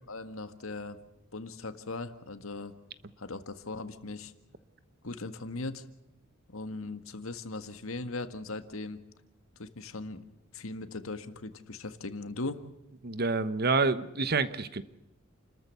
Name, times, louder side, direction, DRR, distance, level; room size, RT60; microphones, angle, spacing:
voice 1, 0.1-1.0 1.3-2.7 3.2-4.3 5.0-5.8 6.5-9.0 9.6-10.2 10.5-12.6, left 3 dB, 80° left, 9 dB, 1.8 m, -39 dB
voice 2, 13.0-14.8, right 3 dB, 50° right, 13 dB, 1.1 m, -28 dB
29.5 x 13.5 x 8.4 m, 0.88 s
head